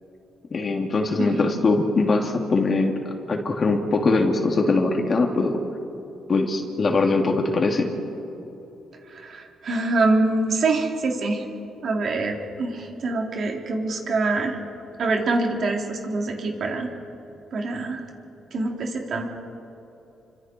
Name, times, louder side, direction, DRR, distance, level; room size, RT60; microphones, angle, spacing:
voice 1, 0.5-3.0 3.3-5.6 6.3-7.9, left 3 dB, 40° left, 2 dB, 3.3 m, -22 dB
voice 2, 9.1-11.4 11.8-14.6 15.0-16.9 17.5-18.0 18.5-19.3, right 3 dB, 55° right, 1 dB, 3.9 m, -25 dB
30.0 x 25.5 x 4.8 m, 2.9 s
cardioid pair, 90°, 0 cm